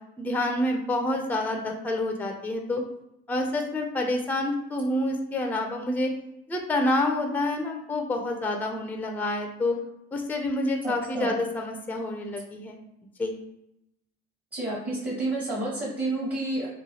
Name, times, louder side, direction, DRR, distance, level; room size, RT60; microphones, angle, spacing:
voice 1, 0.2-2.8 3.3-6.1 6.5-9.8 10.1-12.8 13.2-13.4, left 1 dB, 5° left, 3 dB, 0.4 m, -28 dB
voice 2, 10.8-11.3 14.5-16.7, right 2 dB, 30° right, -5 dB, 1.1 m, -30 dB
3.0 x 2.2 x 2.8 m, 0.83 s
hypercardioid pair, 65°, 32 cm